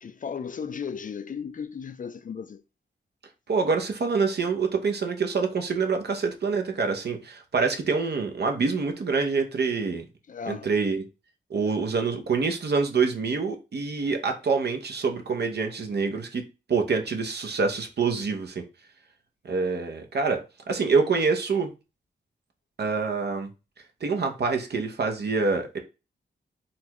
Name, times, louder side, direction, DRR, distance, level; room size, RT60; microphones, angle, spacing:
voice 1, 0.0-2.6 10.3-10.7, left 6 dB, 45° left, 0.4 m, -35 dB
voice 2, 3.5-10.0 10.5-11.0 11.5-16.4 16.7-18.6 19.4-21.7 22.8-23.5 24.0-25.8, right 4 dB, 60° right, 0.7 m, -26 dB
4.1 x 2.3 x 2.9 m
cardioid pair, 55°, 19 cm